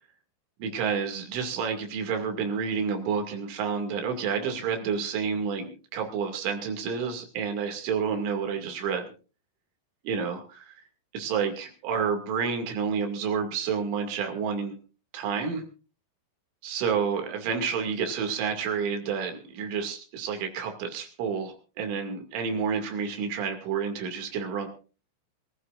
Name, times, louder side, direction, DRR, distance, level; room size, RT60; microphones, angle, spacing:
voice 1, 0.6-9.1 10.0-10.8 11.1-14.8 15.1-15.6 16.6-24.7, right 6 dB, 70° right, 5 dB, 4.8 m, -29 dB
25.0 x 14.5 x 2.5 m, 0.35 s
omnidirectional pair, 5.7 m